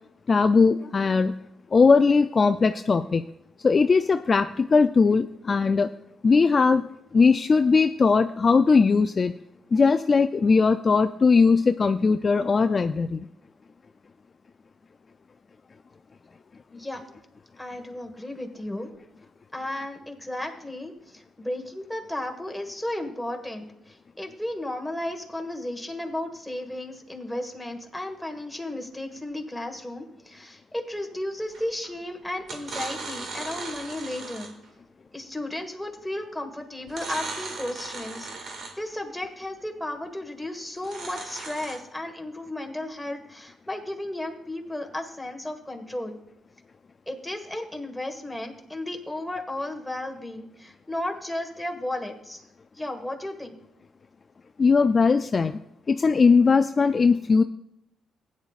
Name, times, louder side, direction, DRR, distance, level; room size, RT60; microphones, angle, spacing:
voice 1, 0.3-1.4 1.7-3.2 3.6-5.9 6.2-6.9 7.1-9.3 9.7-13.3 54.6-55.6 55.9-57.4, left 4 dB, 40° left, 9 dB, 0.3 m, -19 dB
voice 2, 16.7-17.0 17.6-18.9 19.5-34.5 35.1-46.2 47.1-52.4 52.8-53.6, left 1 dB, 5° left, 3 dB, 1.6 m, -34 dB
sound 1, 31.5-31.9 32.4-34.7 36.9-38.9 40.8-41.8, right 3 dB, 65° right, 1.9 m, -37 dB
15.5 x 9.5 x 2.4 m, 0.79 s
cardioid pair, 85°, 0 cm